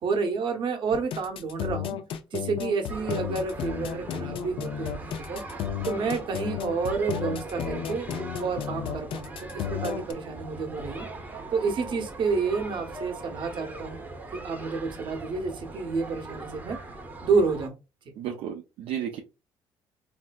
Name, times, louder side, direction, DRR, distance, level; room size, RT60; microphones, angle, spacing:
voice 1, 0.0-2.0 2.3-5.4 5.8-8.1 8.4-11.1 11.5-14.0 14.3-16.8 17.2-17.8, right 4 dB, 55° right, 4 dB, 0.9 m, -29 dB
sound 1, 0.9-10.1, left 9 dB, 65° left, 0.4 m, -33 dB
sound 2, 2.9-17.7, right 2 dB, 20° right, 0.7 m, -40 dB
voice 2, 18.2-19.2, right 9 dB, 80° right, 3 dB, 0.5 m, -33 dB
3.2 x 2.6 x 2.2 m, 0.28 s
cardioid pair, 110°, 10 cm